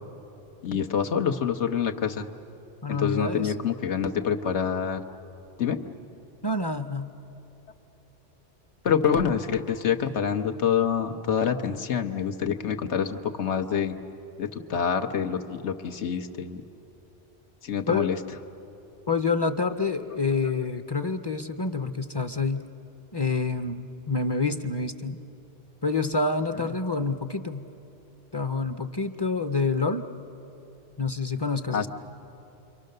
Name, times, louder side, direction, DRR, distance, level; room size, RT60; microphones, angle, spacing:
voice 1, 0.6-2.3 2.9-5.0 5.6-5.8 8.8-14.0 14.4-16.6 17.6-18.2 31.7-31.9, left 7 dB, 85° left, 5 dB, 1.3 m, -26 dB
voice 2, 2.8-3.5 6.4-7.1 17.9-18.1 19.1-22.6 23.1-25.2 25.8-27.6 28.3-30.1 31.0-31.9, left 3 dB, 30° left, 9 dB, 0.5 m, -27 dB
29.5 x 24.0 x 6.6 m, 3.0 s
omnidirectional pair, 1.1 m